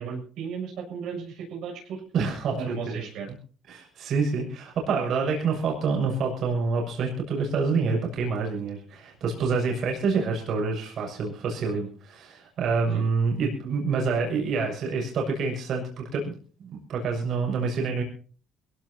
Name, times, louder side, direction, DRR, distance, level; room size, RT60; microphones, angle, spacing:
voice 1, 0.0-2.0 2.6-3.3 12.9-13.0, right 6 dB, 75° right, 0 dB, 6.8 m, -35 dB
voice 2, 2.1-3.1 3.7-18.0, right 4 dB, 60° right, 0 dB, 6.7 m, -27 dB
23.0 x 17.0 x 2.8 m, 0.40 s
cardioid pair, 135°, 0 cm